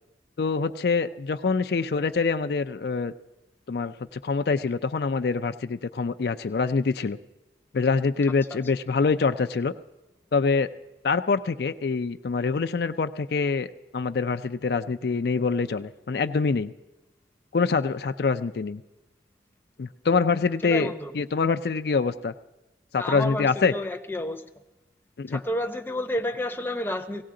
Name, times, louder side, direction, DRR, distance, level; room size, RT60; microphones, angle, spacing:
voice 1, 0.4-3.1 3.7-7.2 7.7-9.7 10.3-10.7 11.0-16.7 17.5-18.8 19.8-22.3 22.9-23.7 25.2-25.4, left 4 dB, 60° left, 10 dB, 0.4 m, -25 dB
voice 2, 20.6-21.2 23.0-24.5 25.3-27.2, left 1 dB, 10° left, 6 dB, 0.7 m, -30 dB
18.0 x 17.0 x 3.8 m, 1.0 s
head